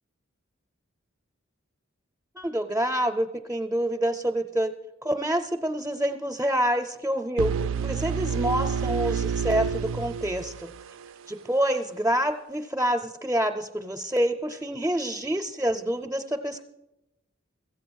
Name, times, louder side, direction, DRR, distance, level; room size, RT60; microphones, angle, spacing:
voice 1, 2.4-4.7 5.0-7.5 7.8-10.7 11.3-16.6, right 1 dB, 10° right, 5 dB, 0.5 m, -27 dB
sound 1, 7.4-11.3, right 6 dB, 70° right, 0.3 m, -29 dB
15.0 x 8.0 x 6.3 m, 0.93 s
head